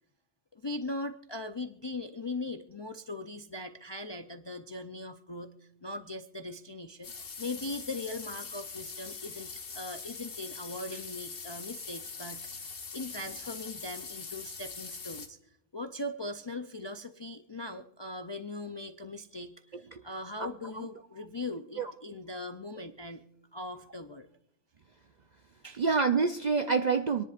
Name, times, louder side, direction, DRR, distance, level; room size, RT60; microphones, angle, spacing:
voice 1, 0.5-5.5 5.8-12.5 12.9-15.4 15.7-23.2 23.5-24.3 25.6-25.8, left 2 dB, 40° left, 6 dB, 0.4 m, -40 dB
sound 1, 7.0-15.3, left 5 dB, 80° left, 1.7 m, -42 dB
voice 2, 25.8-27.2, right 5 dB, 55° right, 7 dB, 0.5 m, -27 dB
26.5 x 10.5 x 2.5 m, 0.76 s
omnidirectional pair, 1.3 m